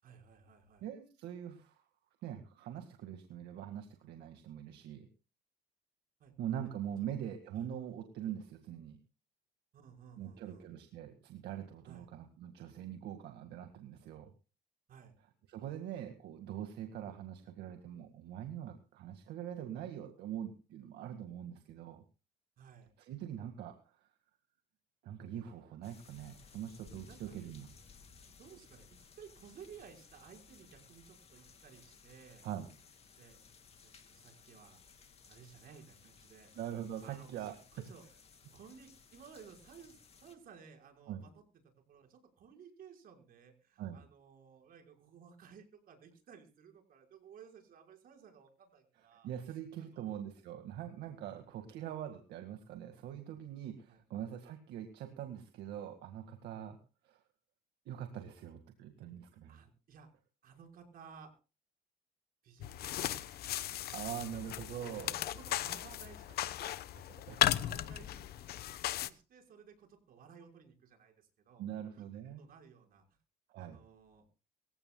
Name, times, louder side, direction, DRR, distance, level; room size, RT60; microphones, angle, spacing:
voice 1, 0.0-0.8 6.2-6.3 7.0-7.2 7.5-7.6 9.7-10.7 11.8-12.1 14.9-15.1 22.6-22.9 27.1-27.4 28.4-32.5 33.2-33.4 33.8-34.8 35.3-36.5 37.0-38.0 38.5-41.4 41.9-50.2 51.2-51.6 53.9-54.0 59.5-60.1 60.4-61.3 62.4-63.5 64.9-66.8 67.3-68.4 69.0-71.7 71.9-72.1 72.4-73.0 73.6-74.3, right 6 dB, 60° right, 2 dB, 5.2 m, -57 dB
voice 2, 0.8-1.8 2.2-5.1 6.4-9.0 10.2-14.3 15.5-22.0 23.0-24.1 25.0-27.7 32.4-32.7 36.6-37.5 41.1-41.3 43.8-44.0 49.2-56.8 57.0-57.2 57.9-59.6 63.9-65.1 67.3-67.4 71.6-72.4 73.5-73.8, right 10 dB, 80° right, 6 dB, 2.0 m, -43 dB
sound 1, 25.8-40.4, left 5 dB, 35° left, 2.7 m, -60 dB
sound 2, 62.6-69.1, left 13 dB, 65° left, 1.0 m, -36 dB
24.5 x 15.5 x 2.3 m, 0.34 s
cardioid pair, 110°, 17 cm